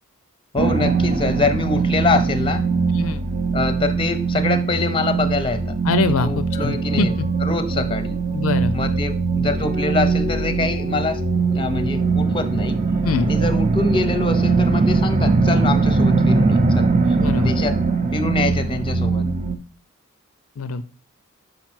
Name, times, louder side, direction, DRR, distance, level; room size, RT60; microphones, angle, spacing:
voice 1, 0.5-2.6 3.5-5.7 6.1-7.1 7.4-8.2 8.7-12.8 13.2-16.8 17.4-17.7 18.1-19.3, left 3 dB, 20° left, 10 dB, 0.6 m, -24 dB
sound 1, 0.6-19.6, right 4 dB, 35° right, 0.6 m, -21 dB
voice 2, 2.9-3.2 5.9-7.3 8.3-8.7 13.0-13.3 17.1-17.6 20.6-20.8, left 4 dB, 65° left, 12 dB, 0.4 m, -23 dB
6.0 x 5.1 x 4.4 m, 0.37 s
head